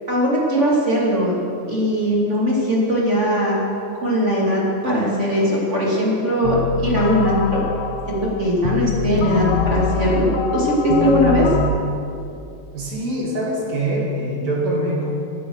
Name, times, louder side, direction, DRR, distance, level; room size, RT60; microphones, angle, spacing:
voice 1, 0.1-1.4 1.7-3.6 4.0-7.6 8.1-11.5, equal, 25° right, -4 dB, 2.7 m, -20 dB
sound 1, 6.4-11.7, left 6 dB, 75° left, 2.2 m, -23 dB
voice 2, 12.7-15.1, right 1 dB, 65° right, -3 dB, 3.7 m, -23 dB
16.5 x 10.0 x 6.4 m, 2.7 s
omnidirectional pair, 3.4 m